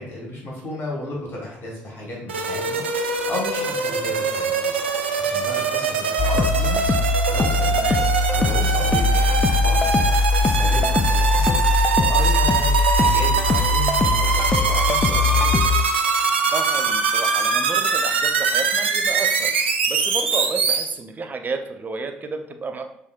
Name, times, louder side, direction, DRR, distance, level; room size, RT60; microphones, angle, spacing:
voice 1, 0.0-4.8 5.2-6.8 7.2-11.6 11.9-15.7, left 1 dB, 45° left, -3 dB, 1.5 m, -34 dB
sound 1, 2.3-20.8, right 5 dB, 80° right, 0.4 m, -22 dB
sound 2, 6.2-15.8, left 3 dB, 25° left, 0.3 m, -21 dB
voice 2, 16.5-19.5 19.9-22.8, right 4 dB, 30° right, 6 dB, 0.6 m, -31 dB
6.4 x 3.2 x 2.3 m, 0.79 s
figure-of-eight pair, 50°, 6 cm